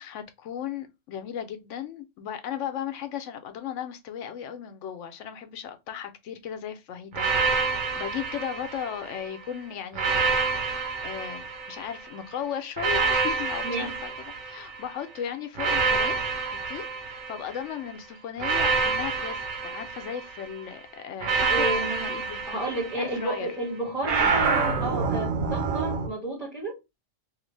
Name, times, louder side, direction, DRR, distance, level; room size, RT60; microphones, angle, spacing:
voice 1, 0.0-10.2 10.6-16.3 16.7-22.4 23.0-23.5, left 9 dB, 70° left, 0.9 m, -36 dB
sound 1, 7.1-9.3 9.9-12.1 12.8-14.9 15.6-17.7 18.4-20.5 21.2-23.4 24.0-26.1, right 4 dB, 85° right, 1.1 m, -27 dB
voice 2, 21.5-22.1 22.5-26.8, right 1 dB, ahead, 1.5 m, -31 dB
2.7 x 2.5 x 3.1 m
omnidirectional pair, 1.4 m